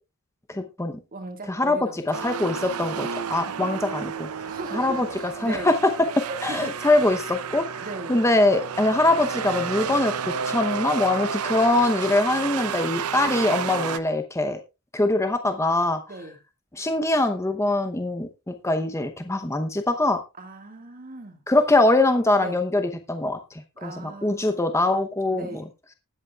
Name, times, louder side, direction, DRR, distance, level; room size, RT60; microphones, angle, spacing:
voice 1, 0.5-1.0 1.5-4.3 4.7-5.1 5.4-5.9 6.4-10.1 10.5-14.6 14.9-16.0 16.7-20.2 21.5-25.5, left 2 dB, 15° left, 0.8 m, -23 dB
voice 2, 1.1-2.1 3.3-3.8 4.5-5.7 6.3-7.1 7.8-8.1 13.4-13.6 16.1-16.4 20.4-21.4 22.4-22.6 23.8-24.6 25.3-25.7, right 2 dB, 40° right, 1.8 m, -38 dB
sound 1, 2.1-14.0, right 6 dB, 75° right, 0.7 m, -31 dB
20.0 x 8.0 x 2.3 m
head